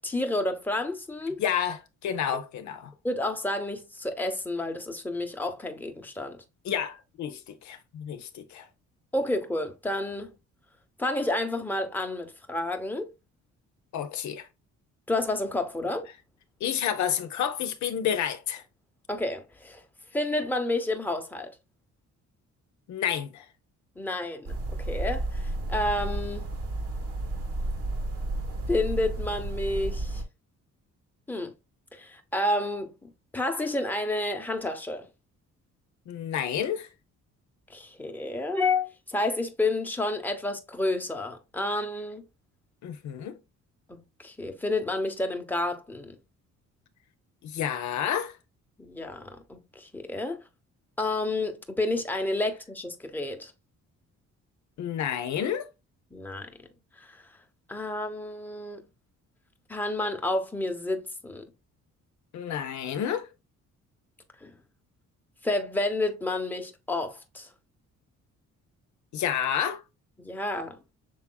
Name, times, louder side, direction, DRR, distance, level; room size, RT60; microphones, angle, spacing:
voice 1, 0.0-1.4 3.0-6.4 9.1-10.3 11.0-13.1 15.1-16.1 19.1-19.8 20.1-21.5 24.0-26.5 28.7-30.2 31.3-31.5 31.9-35.1 37.7-42.3 43.9-46.1 48.8-50.4 51.0-53.5 56.1-56.6 57.0-57.3 57.7-58.8 59.7-61.5 64.4-64.6 65.4-67.5 70.2-70.8, left 2 dB, 5° left, 1.0 m, -30 dB
voice 2, 1.4-2.9 6.6-8.7 13.9-14.5 16.6-18.6 22.9-23.4 36.1-36.9 42.8-43.4 47.4-48.3 54.8-55.7 62.3-63.3 69.1-69.8, left 9 dB, 70° left, 0.7 m, -30 dB
sound 1, 24.4-30.2, right 2 dB, 50° right, 1.4 m, -32 dB
6.4 x 3.5 x 2.3 m
cardioid pair, 90°, 30 cm